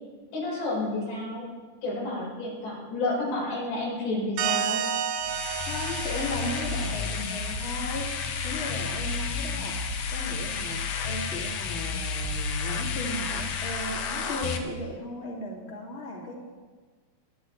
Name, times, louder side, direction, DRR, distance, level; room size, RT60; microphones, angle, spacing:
voice 1, 0.3-1.4 1.8-4.8, left 2 dB, 90° left, -5 dB, 6.8 m, -30 dB
sound 1, 4.4-7.8, right 8 dB, 75° right, 2.8 m, -31 dB
sound 2, 5.2-14.6, left 5 dB, 70° left, 2.1 m, -31 dB
voice 2, 5.7-9.8 10.1-16.3, left 1 dB, 20° left, -4 dB, 2.0 m, -36 dB
23.0 x 9.9 x 3.2 m, 1.5 s
omnidirectional pair, 4.7 m